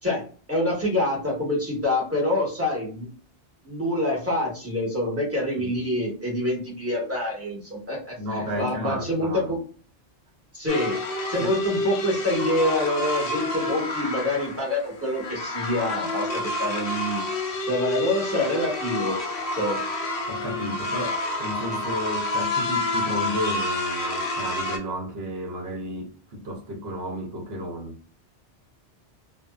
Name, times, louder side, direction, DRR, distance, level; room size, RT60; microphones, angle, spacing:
voice 1, 0.0-3.1 3.6-8.2 8.6-9.6 10.5-11.0 11.3-17.2 17.7-19.2 19.5-19.8, left 1 dB, 15° right, 1.1 m, -26 dB
voice 2, 8.2-9.5 11.4-11.5 20.3-28.0, equal, 65° right, 1.0 m, -32 dB
sound 1, 10.7-24.8, left 2 dB, 60° left, 0.7 m, -29 dB
2.6 x 2.2 x 2.3 m
omnidirectional pair, 1.1 m